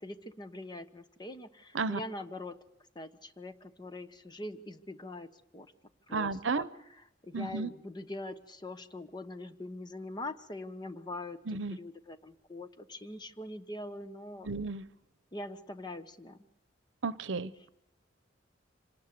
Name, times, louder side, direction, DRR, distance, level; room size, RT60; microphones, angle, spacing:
voice 1, 0.0-2.6 2.9-5.3 5.5-5.7 6.1-6.7 7.2-14.5 15.3-16.4, left 2 dB, 25° left, 10 dB, 1.1 m, -43 dB
voice 2, 6.1-6.7 7.3-7.7 11.5-11.8 14.4-14.8 17.0-17.7, right 4 dB, 80° right, 16 dB, 0.8 m, -33 dB
25.5 x 19.0 x 6.7 m, 0.81 s
head